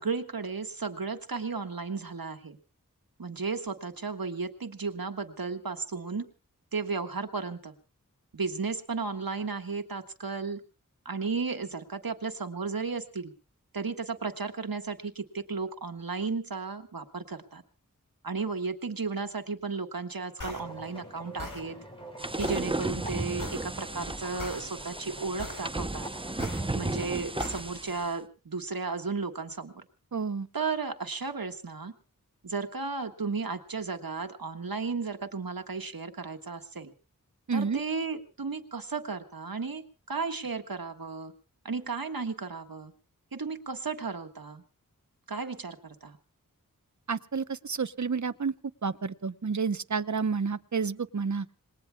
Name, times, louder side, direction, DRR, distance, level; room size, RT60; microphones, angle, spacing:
voice 1, 0.0-2.6 3.2-6.2 6.7-7.8 8.3-10.6 11.0-13.3 13.7-17.6 18.2-21.8 22.4-26.1 26.7-29.8 30.5-31.9 32.4-36.9 37.5-39.8 40.1-41.3 41.6-42.9 43.3-44.6 45.3-46.2, right 4 dB, 90° right, 7 dB, 1.5 m, -34 dB
sound 1, 20.4-20.6 21.4-21.6 22.4-22.6 23.4-23.6 24.4-24.6 25.4-25.6 26.4-26.6 27.4-27.6, left 2 dB, 70° left, 3.9 m, -39 dB
sound 2, 20.4-27.2, right 1 dB, 15° left, 6.5 m, -46 dB
sound 3, 22.2-28.1, right 2 dB, 15° right, 0.7 m, -34 dB
voice 2, 30.1-30.5 37.5-37.8 47.1-48.5 48.8-51.5, right 5 dB, 55° right, 14 dB, 0.8 m, -30 dB
27.0 x 20.5 x 2.3 m, 0.33 s
wide cardioid pair, 45°, 34 cm